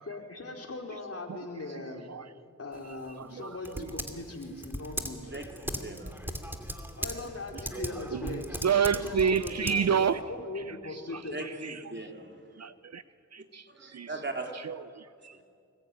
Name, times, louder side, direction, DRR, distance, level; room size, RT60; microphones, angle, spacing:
voice 1, 0.1-2.1 2.6-5.3 7.0-8.6 9.0-11.4, left 2 dB, 45° left, 2 dB, 4.5 m, -40 dB
Typing, 2.7-10.2, equal, 5° right, 2.7 m, -39 dB
voice 2, 3.2-3.9 7.8-7.9 8.1-10.2 11.4-11.8 12.6-13.0 13.3-14.1 14.6-15.3, right 7 dB, 55° right, 15 dB, 0.7 m, -29 dB
voice 3, 5.3-6.4 8.8-8.9 11.3-12.5 13.7-14.5 15.3-15.4, right 2 dB, 35° right, 2 dB, 3.6 m, -40 dB
25.5 x 20.5 x 9.2 m, 2.4 s
cardioid pair, 50°, 32 cm